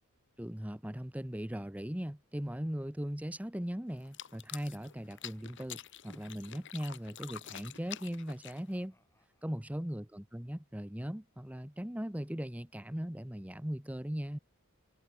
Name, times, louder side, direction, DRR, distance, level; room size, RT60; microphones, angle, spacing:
voice 1, 0.4-8.9 9.4-14.4, equal, 5° right, 1.0 m, -39 dB
sound 1, 3.8-6.5 7.4-10.0, left 1 dB, 10° left, 6.9 m, -71 dB
sound 2, 4.0-8.9, left 10 dB, 55° left, 2.1 m, -47 dB
head